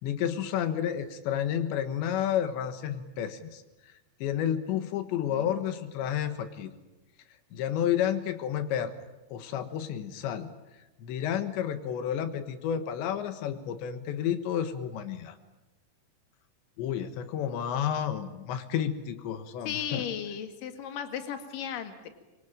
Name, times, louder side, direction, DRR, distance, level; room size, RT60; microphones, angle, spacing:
voice 1, 0.0-3.6 4.2-6.7 7.5-8.9 9.3-10.5 11.0-15.4 16.8-20.0, left 9 dB, 85° left, 9 dB, 3.6 m, -31 dB
voice 2, 19.6-22.1, left 9 dB, 55° left, 7 dB, 3.4 m, -35 dB
25.5 x 24.5 x 8.9 m, 1.1 s
omnidirectional pair, 5.0 m